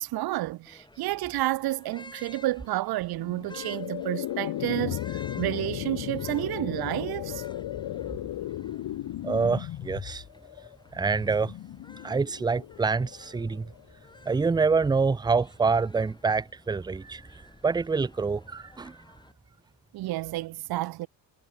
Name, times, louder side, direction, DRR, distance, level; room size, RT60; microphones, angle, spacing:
voice 1, 0.0-7.4 19.9-21.1, right 17 dB, 55° right, 0.6 m, -30 dB
sound 1, 0.7-19.3, left 2 dB, 10° left, 7.1 m, -53 dB
sound 2, 3.2-14.3, left 13 dB, 65° left, 2.5 m, -36 dB
voice 2, 9.2-10.2 10.9-11.5 12.0-13.7 14.2-17.3 17.6-19.0, right 4 dB, 10° right, 0.5 m, -26 dB
cardioid pair, 125°, 44 cm